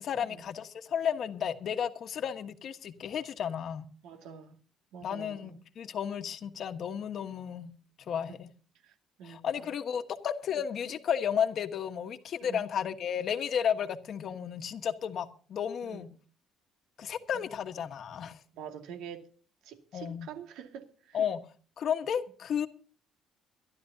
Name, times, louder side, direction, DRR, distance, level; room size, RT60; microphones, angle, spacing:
voice 1, 0.0-3.9 5.0-7.7 8.1-8.5 9.2-16.1 17.0-18.4 19.9-20.3 21.1-21.5 21.8-22.7, left 8 dB, 45° left, 1.2 m, -33 dB
voice 2, 4.0-4.6 4.9-5.6 8.3-8.4 8.8-9.7 10.5-10.6 12.4-12.6 15.8-16.0 18.5-19.3 19.6-21.2, right 7 dB, 80° right, 2.1 m, -46 dB
23.5 x 11.5 x 2.7 m
cardioid pair, 155°, 0 cm